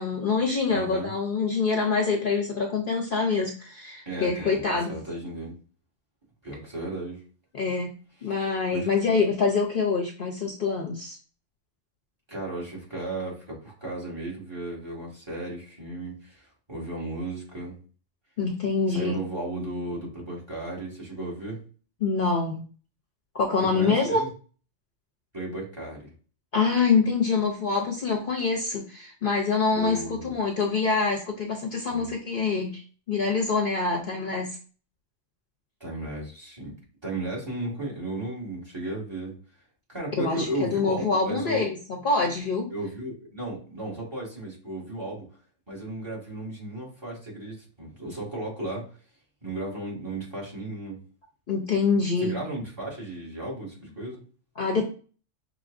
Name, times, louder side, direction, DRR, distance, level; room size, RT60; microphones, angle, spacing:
voice 1, 0.0-4.9 7.5-7.9 8.2-11.2 18.4-19.2 22.0-22.6 23.3-24.2 26.5-32.8 33.1-34.6 40.2-41.8 42.0-42.7 51.5-52.4 54.6-54.8, left 4 dB, 50° left, 0 dB, 0.9 m, -25 dB
voice 2, 0.7-1.1 4.1-4.6 4.9-5.6 6.4-7.2 8.2-8.3 8.7-8.9 12.3-17.8 18.9-21.6 23.7-24.3 25.3-26.1 29.7-30.3 31.8-32.1 35.8-36.7 37.0-39.4 39.9-41.6 42.7-45.3 45.7-48.8 49.4-51.0 52.2-54.2, right 2 dB, 20° right, -3 dB, 2.1 m, -35 dB
6.0 x 3.3 x 2.6 m, 0.39 s
omnidirectional pair, 1.3 m